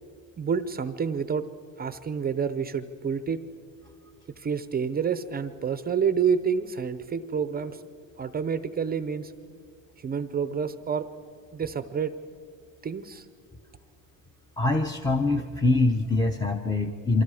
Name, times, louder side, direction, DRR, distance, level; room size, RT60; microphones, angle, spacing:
voice 1, 0.4-1.5 1.8-3.4 4.4-7.8 8.2-9.3 10.0-11.1 11.5-12.1 12.8-13.3, right 6 dB, 25° right, 12 dB, 0.6 m, -28 dB
voice 2, 14.6-17.2, left 2 dB, 10° left, 6 dB, 0.7 m, -24 dB
28.5 x 24.0 x 4.9 m, 2.3 s
cardioid pair, 140°, 41 cm